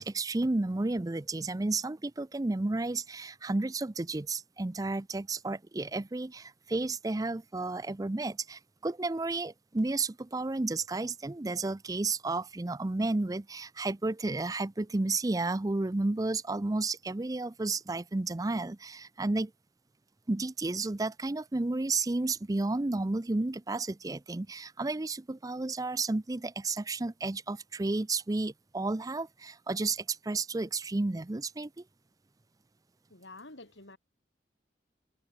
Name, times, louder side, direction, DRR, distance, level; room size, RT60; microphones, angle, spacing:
voice 1, 0.0-19.5 20.3-31.7, right 2 dB, 20° right, 0.5 m, -32 dB
voice 2, 33.1-34.0, left 2 dB, 90° left, 6.0 m, -49 dB
head